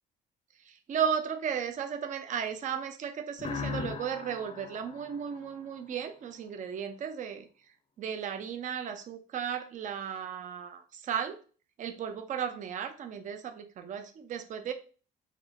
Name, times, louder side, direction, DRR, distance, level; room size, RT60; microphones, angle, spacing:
voice 1, 0.7-7.5 8.0-11.4 11.8-14.7, right 8 dB, 50° right, 7 dB, 0.6 m, -35 dB
sound 1, 3.4-6.1, left 5 dB, 40° left, 0.7 m, -39 dB
5.2 x 2.1 x 4.0 m, 0.38 s
cardioid pair, 110°, 17 cm